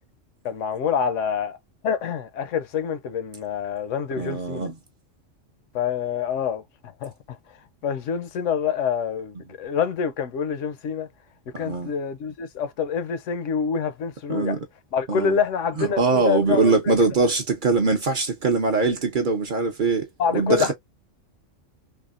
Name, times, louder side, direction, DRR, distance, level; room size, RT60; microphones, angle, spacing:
voice 1, 0.4-1.6 1.8-4.7 5.7-6.6 7.0-7.4 7.8-11.1 11.6-14.6 14.9-16.9 20.2-20.7, left 7 dB, 80° left, 0.9 m, -26 dB
voice 2, 4.2-4.7 11.5-11.9 14.3-14.6 15.1-15.4 15.8-20.1 20.3-20.7, right 4 dB, 50° right, 0.7 m, -22 dB
3.4 x 2.1 x 2.4 m
omnidirectional pair, 1.3 m